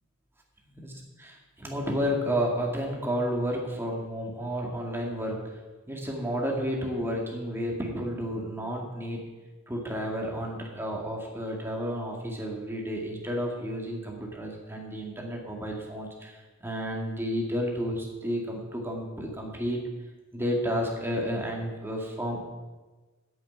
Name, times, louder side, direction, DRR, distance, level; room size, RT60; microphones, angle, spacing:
voice 1, 1.2-5.4 5.9-9.2 9.7-19.8 20.3-22.4, equal, 10° right, -1 dB, 2.2 m, -31 dB
9.0 x 8.5 x 9.4 m, 1.2 s
head